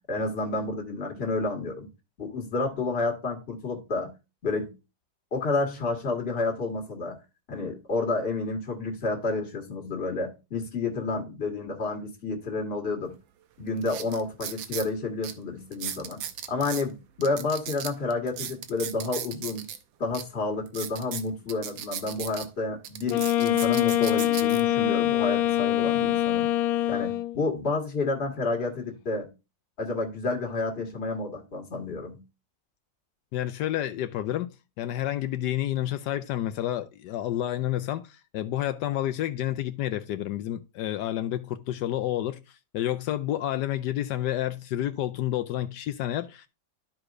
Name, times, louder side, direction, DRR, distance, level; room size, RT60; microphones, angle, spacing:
voice 1, 0.0-1.9 2.2-4.1 4.4-4.7 5.3-7.2 7.5-13.1 13.6-16.2 16.5-19.7 20.0-26.5 26.9-29.3 29.8-32.2, left 3 dB, 30° left, 1.8 m, -30 dB
sound 1, 13.1-13.2 13.8-14.9 15.2-15.3 15.7-16.8 17.2-19.8 20.1-20.2 20.7-22.5 22.8-24.6 25.2-25.5, right 10 dB, 85° right, 1.5 m, -36 dB
Wind instrument woodwind instrument, 23.1-27.4, left 14 dB, 90° left, 1.4 m, -24 dB
voice 2, 33.3-34.5 34.8-46.5, left 12 dB, 75° left, 1.1 m, -30 dB
13.0 x 4.8 x 2.5 m
omnidirectional pair, 2.1 m